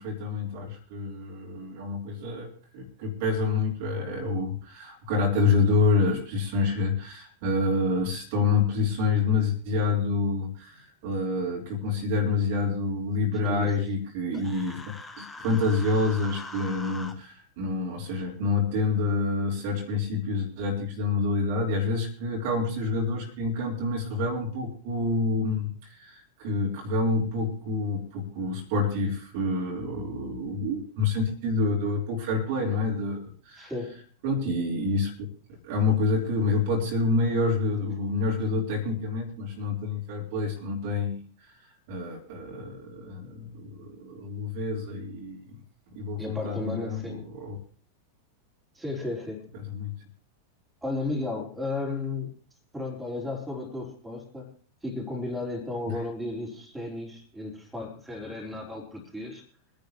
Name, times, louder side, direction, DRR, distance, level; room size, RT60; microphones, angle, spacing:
voice 1, 0.0-14.8 15.2-33.7 34.2-35.1 35.5-41.2 41.9-45.6 45.9-47.6 49.7-50.0 55.9-56.0, left 3 dB, 50° right, -1 dB, 3.5 m, -27 dB
voice 2, 13.4-13.9 33.6-34.0 46.2-47.2 48.7-49.5 50.8-52.3 52.7-54.5 54.8-59.4, left 2 dB, 5° right, -1 dB, 4.0 m, -34 dB
Human voice, 14.3-17.1, left 3 dB, 10° left, 1.4 m, -42 dB
24.5 x 10.5 x 3.0 m, 0.39 s
figure-of-eight pair, 90°, 0 cm